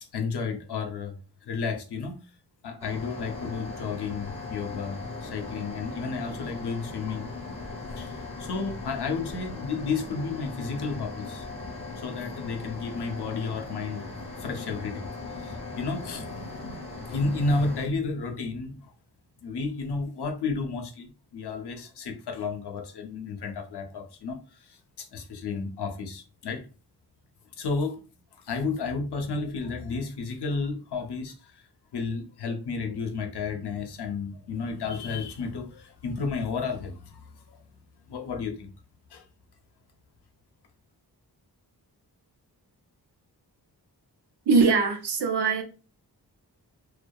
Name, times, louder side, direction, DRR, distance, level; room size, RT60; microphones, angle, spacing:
voice 1, 0.1-2.2 2.6-7.3 7.9-11.4 12.0-15.0 15.3-18.9 19.4-26.6 27.6-28.0 28.3-31.6 31.9-37.6 38.0-38.7 39.1-39.2, left 4 dB, 80° left, 0.6 m, -32 dB
sound 1, 2.8-17.9, left 3 dB, 15° left, 0.7 m, -39 dB
voice 2, 44.5-45.6, right 4 dB, 80° right, 0.6 m, -22 dB
2.6 x 2.2 x 2.2 m
wide cardioid pair, 105°, 40 cm